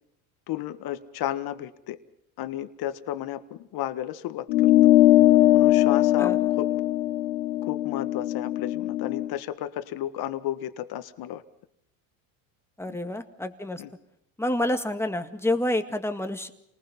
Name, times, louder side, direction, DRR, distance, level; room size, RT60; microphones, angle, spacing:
voice 1, 0.5-2.0 2.4-4.7 5.5-6.7 7.6-11.4 12.9-13.0 13.8-13.9, left 12 dB, 55° left, 10 dB, 1.7 m, -33 dB
sound 1, 4.5-9.3, left 15 dB, 85° left, 1.3 m, -20 dB
voice 2, 12.8-13.8 14.4-16.5, left 1 dB, 5° left, 6 dB, 1.9 m, -28 dB
29.0 x 19.5 x 5.6 m, 0.76 s
supercardioid pair, 110°, 43 cm